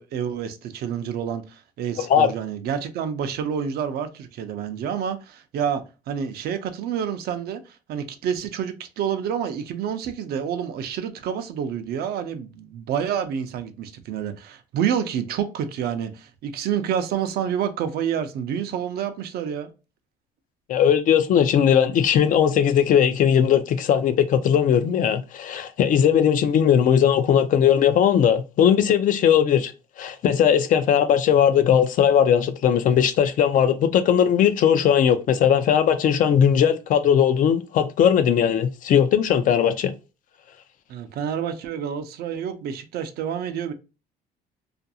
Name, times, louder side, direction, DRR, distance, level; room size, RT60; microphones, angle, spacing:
voice 1, 0.0-19.7 40.9-43.7, right 8 dB, 70° right, 0.5 m, -28 dB
voice 2, 2.0-2.3 20.7-29.7 30.0-39.9, left 8 dB, 55° left, 0.4 m, -19 dB
2.5 x 2.3 x 2.6 m
cardioid pair, 110°, 17 cm